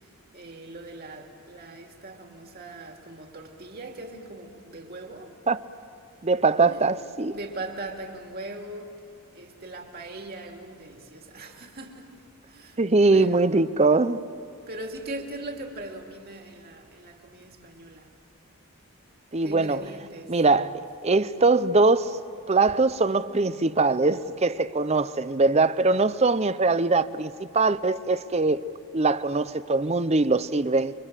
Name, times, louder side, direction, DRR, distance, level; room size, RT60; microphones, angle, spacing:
voice 1, 0.0-5.4 6.7-6.8 7.3-9.0 9.3-12.8 13.1-13.6 14.7-18.1 19.4-20.3, right 2 dB, 45° right, 2.5 m, -40 dB
voice 2, 6.2-7.4 12.8-14.2 19.3-19.9 20.3-22.2 22.5-28.7 28.9-30.9, right 3 dB, 30° right, 0.6 m, -22 dB
29.5 x 24.0 x 7.5 m
head